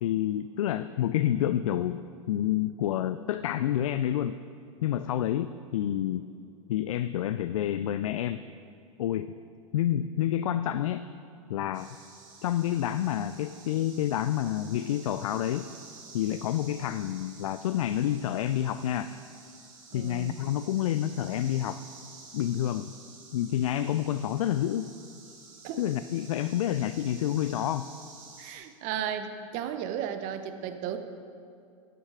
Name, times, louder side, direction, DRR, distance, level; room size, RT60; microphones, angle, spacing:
voice 1, 0.0-2.0 2.3-4.4 4.8-6.2 6.7-8.4 9.0-9.3 9.7-11.0 11.5-11.9 12.4-15.7 16.1-19.1 19.9-21.8 22.3-22.9 23.3-24.9 25.8-27.9, left 11 dB, 75° left, 11 dB, 0.4 m, -28 dB
sound 1, 11.7-28.5, right 4 dB, 65° right, 2.6 m, -51 dB
voice 2, 19.9-20.5 25.6-25.8 28.4-31.0, right 9 dB, 45° right, 9 dB, 0.9 m, -34 dB
13.0 x 9.3 x 4.8 m, 2.4 s
hypercardioid pair, 100°, 17 cm